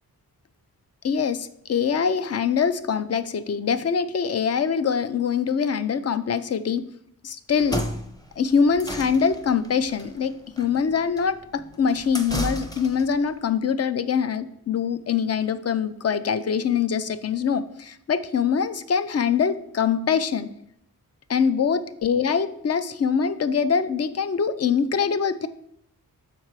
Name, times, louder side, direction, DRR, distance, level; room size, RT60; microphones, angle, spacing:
voice 1, 1.0-6.9 7.2-7.9 8.4-20.5 21.3-25.5, left 6 dB, 45° left, 13 dB, 0.5 m, -24 dB
sound 1, 7.5-13.2, equal, 10° left, 0.7 m, -33 dB
6.6 x 4.5 x 4.7 m, 0.75 s
wide cardioid pair, 95°, 36 cm